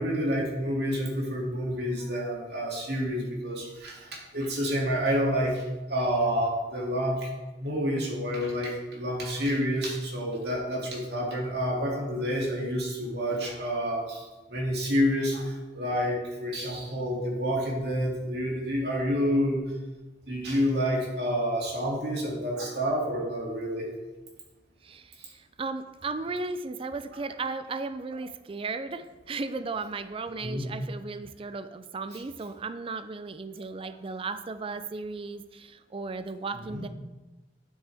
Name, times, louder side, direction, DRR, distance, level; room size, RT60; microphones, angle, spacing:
voice 1, 0.0-7.3 7.6-14.2 14.5-19.6 20.3-23.9 25.2-25.3 30.4-30.7 36.7-36.9, equal, 65° right, -2 dB, 2.4 m, -29 dB
voice 2, 24.8-36.9, right 3 dB, 30° right, 11 dB, 0.4 m, -35 dB
9.4 x 7.7 x 3.4 m, 1.1 s
head